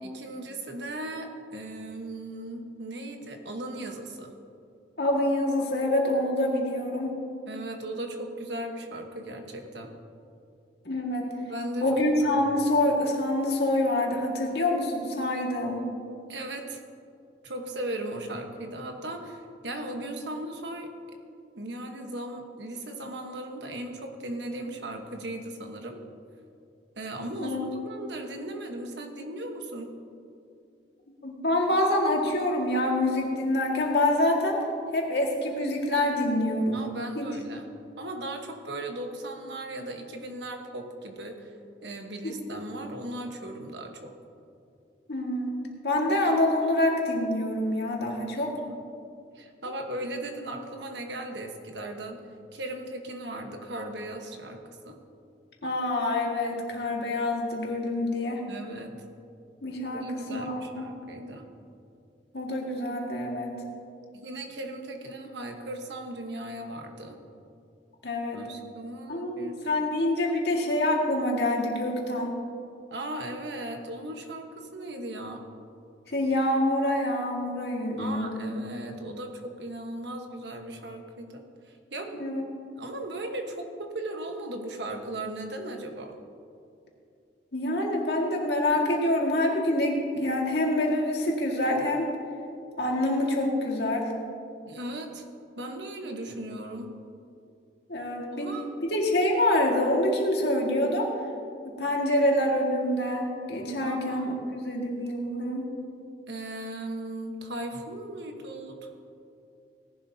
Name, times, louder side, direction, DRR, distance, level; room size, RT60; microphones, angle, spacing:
voice 1, 0.0-4.3 7.5-9.9 11.5-11.9 12.2-12.4 16.3-16.8 17.4-20.9 21.5-26.0 26.9-29.9 36.7-37.6 38.0-41.5 41.8-44.1 48.3-48.8 49.3-52.2 52.5-54.6 54.8-55.0 58.5-59.0 59.9-61.5 64.1-67.2 68.3-69.8 72.9-75.4 78.0-82.3 82.8-86.1 94.7-95.3 95.6-96.9 98.4-98.7 103.8-104.5 106.3-108.9, right 1 dB, 75° right, 4 dB, 1.2 m, -37 dB
voice 2, 5.0-7.2 10.9-11.3 11.8-15.8 27.4-27.7 31.2-34.6 34.9-36.8 37.2-37.3 42.2-42.6 45.1-45.5 45.8-48.5 55.6-58.4 59.6-60.9 62.3-63.5 68.0-68.4 69.1-72.4 76.1-78.5 82.1-82.4 87.5-92.1 92.8-94.1 97.9-98.5 98.9-101.1 101.6-104.3 104.6-105.7, left 1 dB, 65° left, 0 dB, 1.9 m, -26 dB
17.5 x 11.0 x 2.8 m, 2.5 s
head